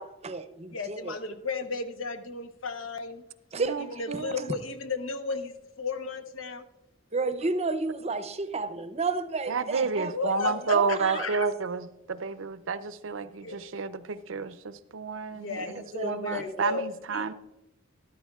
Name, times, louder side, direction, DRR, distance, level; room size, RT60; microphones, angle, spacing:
voice 1, 0.0-1.2 3.5-4.2 7.1-11.3 15.7-16.4, right 3 dB, 35° right, 0.6 m, -32 dB
voice 2, 0.7-3.2 4.0-6.7 10.1-11.5 13.4-13.6 15.3-16.8 17.1-17.3, left 4 dB, 90° left, 0.9 m, -34 dB
voice 3, 3.6-4.4 9.5-15.7 16.0-17.3, right 5 dB, 80° right, 0.6 m, -30 dB
13.5 x 12.5 x 2.3 m
head